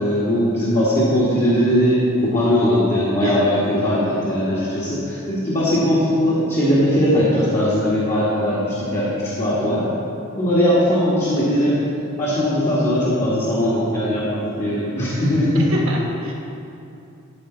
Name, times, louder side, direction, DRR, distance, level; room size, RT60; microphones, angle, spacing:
voice 1, 0.0-9.9 10.3-11.8 12.2-15.7, equal, 35° left, -9 dB, 1.5 m, -19 dB
voice 2, 15.7-16.3, right 1 dB, 70° right, -2 dB, 1.4 m, -26 dB
12.5 x 5.2 x 3.9 m, 2.7 s
head